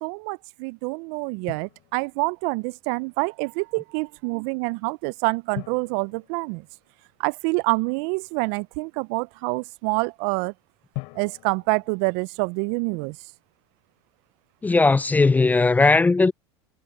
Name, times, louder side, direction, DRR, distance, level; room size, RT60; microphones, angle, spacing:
voice 1, 0.0-6.6 7.2-10.5 11.2-13.2, right 30 dB, 60° right, 0.4 m, -27 dB
Drum, 1.5-2.6 5.5-7.4 10.9-12.9, left 30 dB, 65° left, 4.1 m, -42 dB
voice 2, 14.6-16.3, left 3 dB, 10° left, 0.4 m, -18 dB
hypercardioid pair, 100°, 14 cm